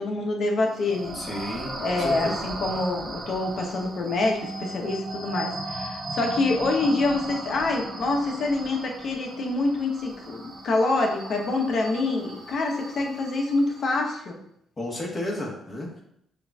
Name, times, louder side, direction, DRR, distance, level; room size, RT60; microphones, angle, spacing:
voice 1, 0.0-14.4, left 2 dB, 60° left, 2 dB, 0.8 m, -26 dB
sound 1, 0.6-14.0, right 2 dB, 40° right, 1.0 m, -37 dB
voice 2, 1.1-2.4 14.8-16.0, left 1 dB, 30° left, -1 dB, 1.2 m, -32 dB
6.4 x 2.4 x 2.3 m, 0.74 s
cardioid pair, 90°, 0 cm